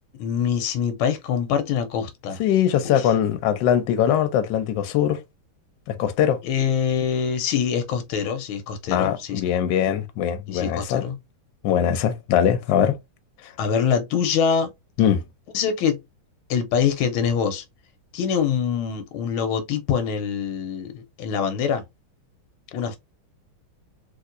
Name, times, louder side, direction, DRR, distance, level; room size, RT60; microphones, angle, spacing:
voice 1, 0.2-2.4 2.8-3.1 6.4-9.4 10.5-11.2 13.6-14.7 15.5-16.0 16.5-17.6 18.1-21.8 22.7-23.0, left 7 dB, 90° left, 1.5 m, -24 dB
voice 2, 2.4-5.2 5.9-6.4 8.9-11.0 11.6-12.9 15.0-15.2, left 9 dB, 70° left, 1.2 m, -21 dB
3.4 x 2.9 x 2.5 m
omnidirectional pair, 2.3 m